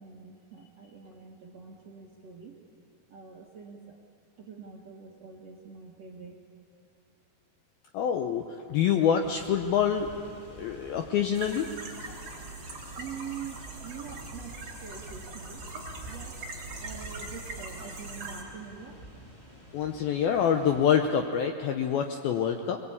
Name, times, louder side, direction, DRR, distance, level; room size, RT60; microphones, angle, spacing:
voice 1, 0.0-2.6 3.1-4.0 4.4-6.4 13.0-16.4 16.8-19.0, right 7 dB, 60° right, -2 dB, 1.7 m, -45 dB
voice 2, 7.9-10.1 10.5-11.7 19.7-22.8, left 8 dB, 75° left, 5 dB, 2.2 m, -26 dB
sound 1, 9.2-20.9, equal, 15° left, 1.1 m, -48 dB
sound 2, 11.3-18.4, right 3 dB, 30° right, 3.3 m, -41 dB
22.5 x 22.5 x 8.7 m, 2.5 s
omnidirectional pair, 5.4 m